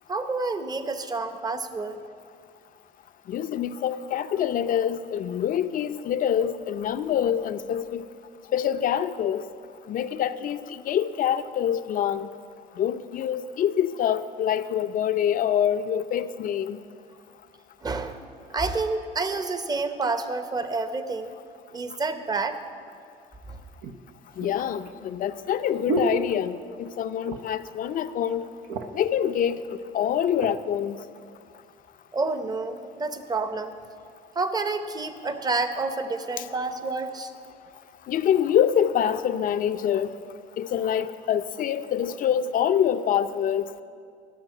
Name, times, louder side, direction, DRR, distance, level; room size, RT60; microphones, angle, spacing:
voice 1, 0.1-2.0 17.8-18.2 18.5-21.3 21.7-22.6 23.5-23.6 32.1-33.8 34.3-37.3, right 3 dB, 25° right, 9 dB, 0.8 m, -29 dB
voice 2, 3.3-8.1 8.5-9.4 9.9-12.3 12.8-16.8 24.4-28.4 28.9-31.0 36.4-36.5 38.1-40.1 40.6-43.6, left 9 dB, 55° left, 11 dB, 0.6 m, -25 dB
sound 1, 22.9-23.0 23.8-26.9 27.2-27.7 28.0-28.1 28.4-29.1 29.8-30.6 31.2-31.4, right 3 dB, 80° right, 0.9 m, -33 dB
13.0 x 6.4 x 8.9 m, 2.3 s
cardioid pair, 110°, 17 cm